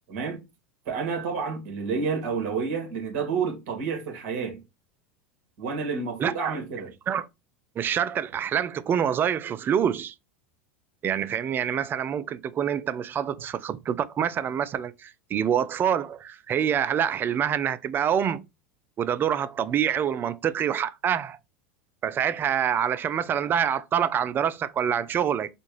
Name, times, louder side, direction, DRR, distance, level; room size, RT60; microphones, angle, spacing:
voice 1, 0.1-0.4 0.9-4.6 5.6-6.9, right 5 dB, 60° right, 1.9 m, -29 dB
voice 2, 6.2-6.6 7.1-7.3 7.8-10.1 11.0-18.4 19.0-21.4 22.0-25.5, right 8 dB, 30° right, 0.4 m, -26 dB
4.3 x 2.3 x 3.1 m
hypercardioid pair, 90°, 7 cm